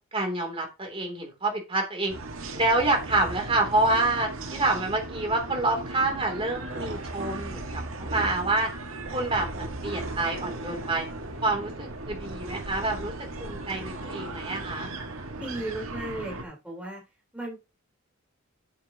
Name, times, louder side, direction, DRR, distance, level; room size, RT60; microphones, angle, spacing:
voice 1, 0.1-2.1 2.5-7.6 8.0-8.7 9.1-11.1 11.4-13.1 13.4-14.9, right 2 dB, 25° right, 3 dB, 3.1 m, -27 dB
sound 1, 2.1-16.4, right 2 dB, 70° right, 1.9 m, -37 dB
voice 2, 15.4-17.0 17.3-17.6, right 1 dB, 5° right, -1 dB, 4.1 m, -35 dB
9.3 x 8.7 x 3.0 m, 0.26 s
head